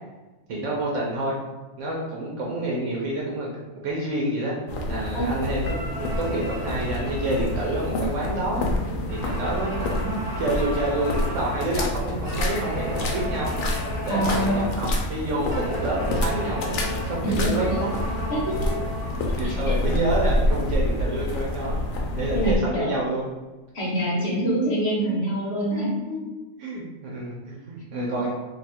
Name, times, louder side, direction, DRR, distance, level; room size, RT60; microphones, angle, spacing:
voice 1, 0.5-1.4 1.8-3.5 3.8-4.5 4.9-8.6 9.1-13.6 14.0-17.9 19.4-21.8 22.1-23.2 24.3-24.4 25.0-25.1 25.7-28.3, right 1 dB, 70° right, -3 dB, 1.0 m, -28 dB
sound 1, 4.7-22.6, left 1 dB, 85° left, 1.0 m, -28 dB
sound 2, 5.6-8.7 9.1-11.7 12.2-14.8 15.5-19.7, equal, 25° left, 0.4 m, -35 dB
voice 2, 14.1-14.7 17.2-17.6 18.3-18.7 19.4-19.8 22.3-23.1 23.7-25.9 28.2-28.3, right 1 dB, 55° left, -4 dB, 1.1 m, -26 dB
2.7 x 2.3 x 4.2 m, 1.2 s
omnidirectional pair, 1.4 m